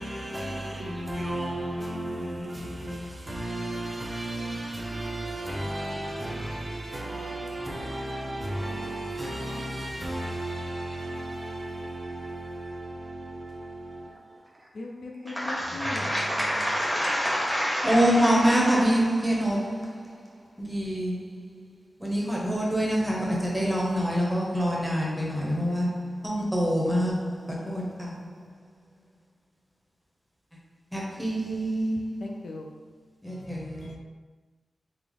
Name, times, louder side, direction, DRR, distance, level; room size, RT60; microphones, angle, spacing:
voice 1, 0.0-15.3 15.6-16.7, right 1 dB, 25° right, 0.4 m, -34 dB
voice 2, 14.7-16.1 32.2-32.8 33.3-34.0, left 2 dB, 70° left, 0.3 m, -39 dB
voice 3, 15.3-28.5 30.9-32.6 33.2-34.0, equal, 5° right, 0.7 m, -26 dB
3.3 x 2.0 x 3.6 m
wide cardioid pair, 125°, 0 cm